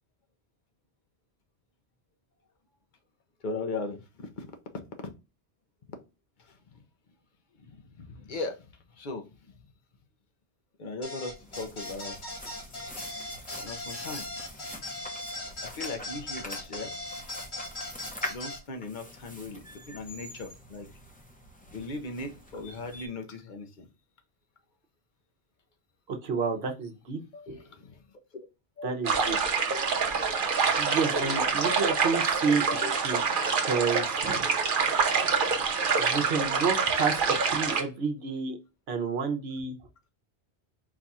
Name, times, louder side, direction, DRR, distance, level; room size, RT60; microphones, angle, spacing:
voice 1, 3.4-4.5 5.0-5.1 8.0-8.6 9.0-9.2 10.8-12.1 13.6-14.7 15.6-16.9 18.3-20.9 21.7-23.9 27.3-28.0 28.8-29.1 29.7-30.1 31.1-31.4 32.7-33.0 35.4-35.6 37.0-37.1, left 3 dB, 50° left, 6 dB, 0.9 m, -38 dB
sound 1, 11.0-18.6, left 1 dB, 75° left, 2.6 m, -39 dB
sound 2, 11.3-23.1, equal, 10° left, 0.7 m, -44 dB
voice 2, 26.1-27.2 27.5-27.6 28.8-29.4 30.8-32.6 33.0-33.2 33.6-34.5 36.0-38.6 38.9-39.8, right 5 dB, 70° right, 4 dB, 1.1 m, -30 dB
sound 3, 29.0-37.8, right 5 dB, 55° right, 0.9 m, -26 dB
4.6 x 2.4 x 4.1 m, 0.29 s
omnidirectional pair, 1.1 m